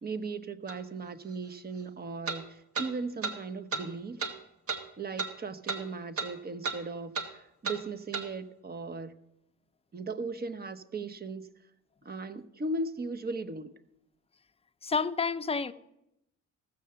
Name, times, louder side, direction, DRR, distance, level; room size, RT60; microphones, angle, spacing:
voice 1, 0.0-4.2 5.0-9.1 9.9-11.5 12.0-13.8, right 3 dB, 30° right, 0.9 m, -37 dB
sound 1, 0.7-0.8 2.3-2.4 2.8-2.9 3.2-3.4 3.7-3.9 4.2-4.3 4.7-4.8 5.2-5.3 5.7-5.8 6.2-6.3 6.6-6.8 7.1-7.3 7.6-7.8 8.1-8.3, right 4 dB, 50° right, 1.3 m, -33 dB
voice 2, 14.8-15.7, left 5 dB, 20° left, 0.6 m, -29 dB
14.5 x 6.6 x 6.8 m
cardioid pair, 90°, 30 cm